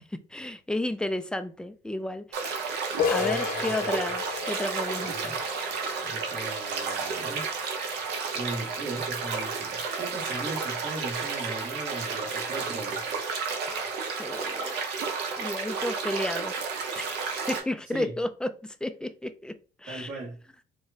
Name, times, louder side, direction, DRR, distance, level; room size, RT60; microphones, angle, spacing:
voice 1, 0.3-2.7 3.1-5.4 13.7-13.9 14.2-14.9 15.4-17.2 17.5-18.5 18.8-19.5 19.8-20.1, left 1 dB, 5° left, 0.3 m, -32 dB
sound 1, 2.3-17.6, right 5 dB, 80° right, 0.8 m, -32 dB
sound 2, 3.0-8.5, left 6 dB, 55° left, 0.7 m, -34 dB
voice 2, 3.1-4.1 5.0-5.4 6.0-7.5 8.3-13.2 17.9-18.1 19.9-20.4, right 2 dB, 65° right, 1.4 m, -38 dB
4.8 x 2.1 x 2.7 m
cardioid pair, 110°, 17 cm